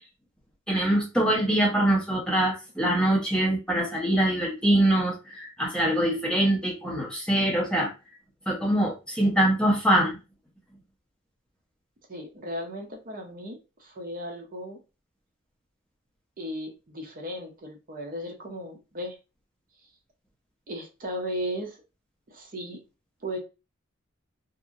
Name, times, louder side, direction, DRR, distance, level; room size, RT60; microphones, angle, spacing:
voice 1, 0.7-7.9 8.5-10.2, right 1 dB, 5° left, -3 dB, 0.7 m, -24 dB
voice 2, 12.1-14.8 16.4-19.2 20.7-21.8 22.3-22.8 23.2-23.4, equal, 40° right, 2 dB, 0.6 m, -36 dB
2.8 x 2.5 x 2.4 m, 0.28 s
head